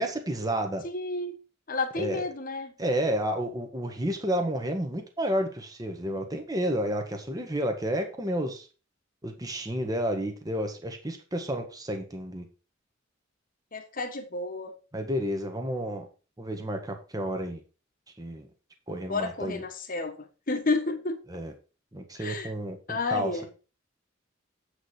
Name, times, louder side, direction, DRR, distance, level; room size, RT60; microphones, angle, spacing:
voice 1, 0.0-0.8 2.0-2.2 2.8-8.7 9.2-12.4 14.9-16.1 16.4-17.6 18.2-18.5 18.9-19.6 21.3-21.5 21.9-23.5, right 1 dB, 20° right, 1.6 m, -31 dB
voice 2, 0.8-1.3 1.7-2.7 13.7-14.7 19.1-21.2 22.2-22.5 22.9-23.5, left 3 dB, 45° left, 1.5 m, -31 dB
8.4 x 5.1 x 6.4 m
head